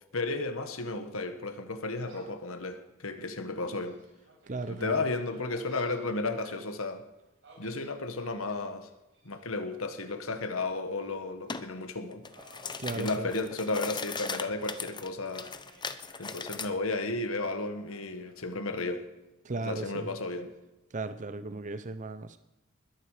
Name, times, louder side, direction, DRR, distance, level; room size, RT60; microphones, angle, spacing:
voice 1, 0.1-4.0 4.8-7.0 7.6-8.9 9.2-12.2 12.9-15.5 16.2-19.0 19.6-20.5, left 3 dB, 75° left, 1.6 m, -33 dB
Gull seagull, 2.0-2.4 3.0-3.1 3.6-6.5 7.4-8.6 9.1-9.6 10.4-11.1 11.5-11.7 12.3-13.8 14.1-14.9 15.2-16.6 17.8-18.9, right 2 dB, 60° right, 7.1 m, -57 dB
voice 2, 4.5-5.0 12.8-13.3 19.4-20.1 20.9-22.4, right 3 dB, 35° right, 0.7 m, -36 dB
sound 1, 11.5-11.7 12.1-16.7, left 5 dB, 20° left, 0.8 m, -38 dB
21.0 x 11.0 x 5.0 m
head